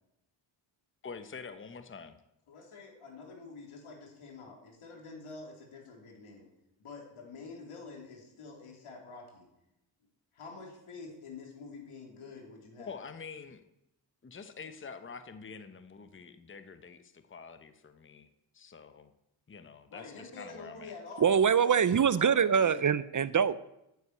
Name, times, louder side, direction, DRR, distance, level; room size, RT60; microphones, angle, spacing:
voice 1, 1.0-2.2 12.8-13.6 14.2-19.1 19.5-20.9, left 5 dB, 25° left, 9 dB, 0.9 m, -46 dB
voice 2, 2.5-6.5 6.8-9.5 10.3-13.0 19.9-21.8 22.2-22.8, left 4 dB, 90° left, 0 dB, 3.7 m, -47 dB
voice 3, 21.2-23.6, right 7 dB, 40° right, 16 dB, 0.6 m, -24 dB
10.0 x 8.4 x 8.4 m, 0.86 s
cardioid pair, 85°, 49 cm